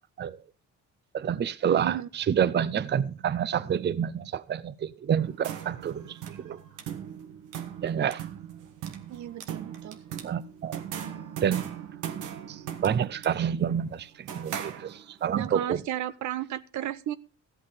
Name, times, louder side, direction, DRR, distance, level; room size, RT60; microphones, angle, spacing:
voice 1, 1.1-6.2 6.4-6.6 7.8-8.2 10.2-10.8 11.4-11.7 12.5-15.8, right 8 dB, 35° right, 0.6 m, -28 dB
voice 2, 1.7-2.1 9.1-10.0 15.3-17.2, right 12 dB, 70° right, 0.7 m, -33 dB
sound 1, 5.2-15.3, right 9 dB, 90° right, 1.4 m, -39 dB
14.0 x 8.3 x 5.0 m
cardioid pair, 90°, 30 cm